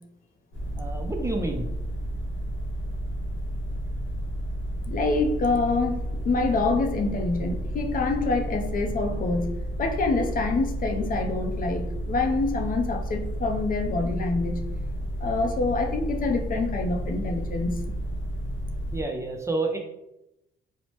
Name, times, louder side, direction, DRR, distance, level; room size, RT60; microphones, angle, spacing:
sound 1, 0.5-19.0, right 1 dB, 75° left, 0.8 m, -31 dB
voice 1, 0.8-1.7 18.9-19.8, right 2 dB, 15° right, 2 dB, 0.4 m, -29 dB
voice 2, 4.9-14.7 15.2-17.8, left 3 dB, 45° left, 3 dB, 0.5 m, -26 dB
2.9 x 2.0 x 3.0 m, 0.88 s
cardioid pair, 90°, 20 cm